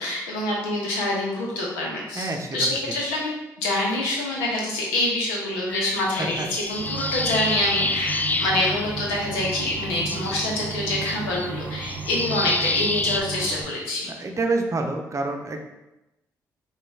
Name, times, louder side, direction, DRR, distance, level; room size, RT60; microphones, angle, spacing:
voice 1, 0.0-3.3 3.6-14.1, left 1 dB, 85° left, -2 dB, 0.9 m, -26 dB
voice 2, 2.2-2.6 6.2-6.5 14.2-15.6, right 3 dB, 35° right, 3 dB, 0.7 m, -27 dB
sound 1, 5.7-9.1 9.4-13.2, left 3 dB, 20° left, 0.3 m, -29 dB
sound 2, 6.8-13.6, right 4 dB, 80° right, 0.6 m, -34 dB
5.0 x 2.5 x 3.5 m, 0.96 s
hypercardioid pair, 45°, 9 cm